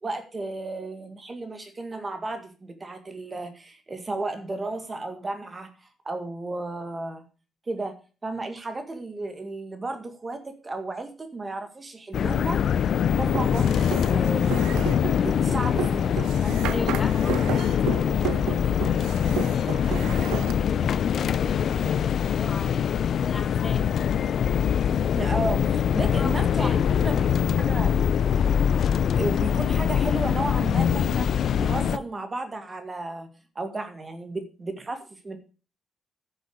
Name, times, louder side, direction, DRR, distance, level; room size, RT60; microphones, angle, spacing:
voice 1, 0.0-7.2 7.7-12.6 13.2-14.7 15.2-16.7 25.1-27.9 29.2-33.3 33.6-35.4, right 2 dB, 25° right, 7 dB, 1.8 m, -34 dB
sound 1, 12.1-32.0, left 8 dB, 60° left, 0.5 m, -23 dB
sound 2, 13.3-20.5, right 12 dB, 90° right, 0.8 m, -34 dB
voice 2, 16.7-20.1 20.6-24.0 25.9-27.1, left 3 dB, 30° left, 6 dB, 2.4 m, -39 dB
10.5 x 6.5 x 6.4 m, 0.35 s
cardioid pair, 90°, 0 cm